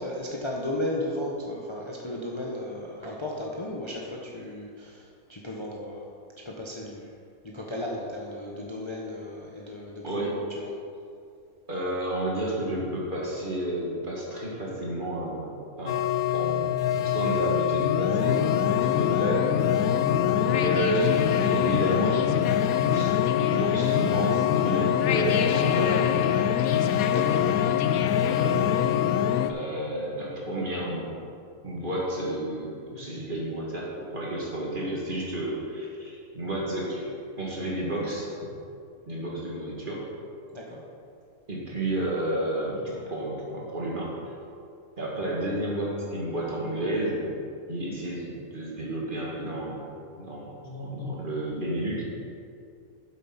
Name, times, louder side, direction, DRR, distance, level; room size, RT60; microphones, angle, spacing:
voice 1, 0.0-6.1 6.4-7.1 7.4-10.3 10.6-10.7 27.1-27.4 40.5-40.8, left 1 dB, 25° left, -3 dB, 0.8 m, -34 dB
voice 2, 10.0-10.4 11.7-15.5 15.8-19.5 20.4-22.4 22.8-23.1 23.5-26.5 28.1-28.9 29.5-31.0 31.6-37.1 37.4-38.3 39.1-40.0 41.5-44.3 45.0-47.3 47.7-49.8 50.2-52.0, right 1 dB, 35° right, -4 dB, 2.1 m, -31 dB
sound 1, 15.9-29.5, left 9 dB, 80° left, 1.0 m, -24 dB
8.3 x 7.6 x 5.7 m, 2.4 s
omnidirectional pair, 1.5 m